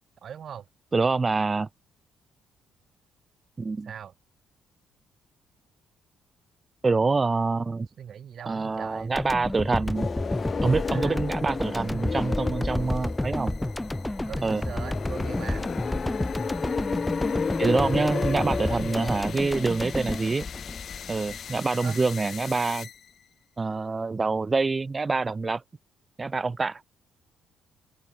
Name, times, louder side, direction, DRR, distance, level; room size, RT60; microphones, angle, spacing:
voice 1, 0.2-0.7 3.8-4.1 8.0-9.1 10.9-11.2 14.3-15.7 18.6-18.8 21.8-22.0, right 8 dB, 55° right, 3.2 m, -40 dB
voice 2, 0.9-1.7 3.6-3.9 6.8-7.9 8.5-10.1 10.6-13.5 14.4-14.6 17.6-20.5 21.1-22.9 23.6-25.6 26.2-26.8, right 4 dB, 25° right, 1.3 m, -26 dB
sound 1, 8.5-23.3, left 8 dB, 55° left, 2.9 m, -45 dB
sound 2, 9.2-21.4, left 1 dB, 10° left, 1.3 m, -31 dB
sound 3, 9.9-21.6, left 5 dB, 35° left, 1.6 m, -33 dB
open air
cardioid pair, 90°, 0 cm